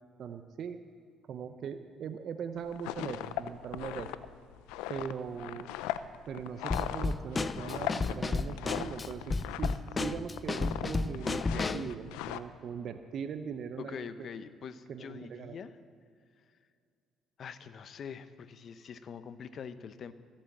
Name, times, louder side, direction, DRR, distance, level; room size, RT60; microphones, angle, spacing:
voice 1, 0.2-0.8 1.3-4.1 4.9-5.7 6.3-9.2 9.6-11.4 11.7-14.3 14.9-15.6, right 7 dB, 60° right, 8 dB, 0.7 m, -40 dB
sound 1, 2.6-10.0 10.3-10.9 11.1-12.4, left 13 dB, 85° left, 0.5 m, -38 dB
Drum kit / Snare drum, 6.7-11.9, left 3 dB, 30° left, 0.5 m, -33 dB
voice 2, 11.2-11.9 13.8-15.8 17.4-20.1, left 7 dB, 55° left, 13 dB, 0.8 m, -44 dB
14.5 x 8.7 x 7.3 m, 2.3 s
supercardioid pair, 70°, 0 cm